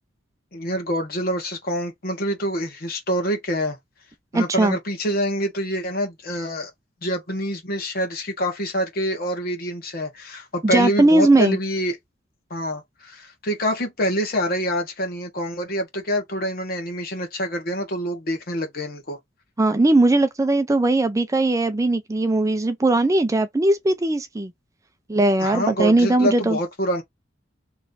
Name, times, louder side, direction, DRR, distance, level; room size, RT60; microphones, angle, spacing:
voice 1, 0.5-3.8 4.3-6.7 7.0-12.0 12.5-19.2 25.4-27.0, equal, 55° left, 1.3 m, -26 dB
voice 2, 4.3-4.8 10.6-11.6 19.6-24.5 25.1-26.6, right 2 dB, 15° right, 0.4 m, -19 dB
3.1 x 2.5 x 3.9 m
head